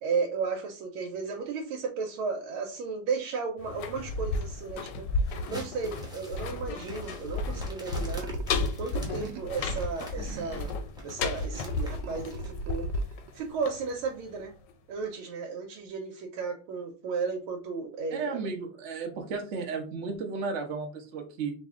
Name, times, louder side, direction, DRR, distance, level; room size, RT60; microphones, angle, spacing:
voice 1, 0.0-8.3 8.8-10.7 11.0-12.9 13.3-14.5 14.9-18.5, right 5 dB, 85° right, 1 dB, 1.5 m, -34 dB
sound 1, 3.6-14.4 14.7-14.8, left 3 dB, 70° left, 1.1 m, -33 dB
sound 2, 5.2-12.5, equal, 5° right, 0.4 m, -47 dB
sound 3, 8.1-8.5 8.9-9.6 10.2-10.8 11.3-13.4, right 6 dB, 70° right, 1.2 m, -43 dB
voice 2, 18.1-21.5, right 4 dB, 55° right, 2 dB, 0.8 m, -34 dB
4.1 x 2.7 x 3.6 m, 0.35 s
omnidirectional pair, 2.3 m